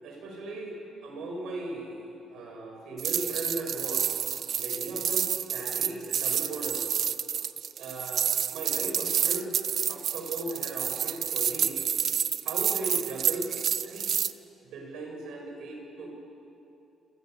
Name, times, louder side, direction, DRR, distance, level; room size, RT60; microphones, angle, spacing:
voice 1, 0.0-4.1 4.5-7.0 7.8-9.5 9.9-11.8 12.4-13.5 13.8-14.1 14.7-16.1, right 2 dB, 85° right, 1 dB, 7.9 m, -37 dB
sound 1, 3.0-14.3, right 8 dB, 45° right, 0.7 m, -29 dB
26.5 x 26.5 x 8.4 m, 2.7 s
cardioid pair, 180°, 0 cm